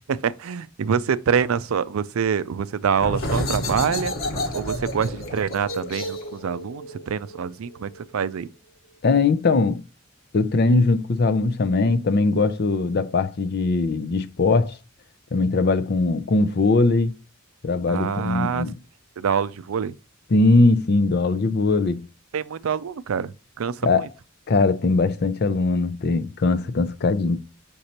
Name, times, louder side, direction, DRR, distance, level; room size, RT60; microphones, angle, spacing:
voice 1, 0.1-4.1 4.5-8.5 17.9-18.7 19.2-19.9 22.3-23.3 23.6-24.1, right 7 dB, 90° right, 0.4 m, -25 dB
sound 1, 3.0-8.4, left 1 dB, 75° left, 1.4 m, -30 dB
voice 2, 9.0-9.8 10.3-14.8 15.3-17.2 17.6-18.8 20.3-22.1 23.8-24.1 24.5-27.4, left 3 dB, 50° left, 0.5 m, -20 dB
6.6 x 5.3 x 2.9 m
head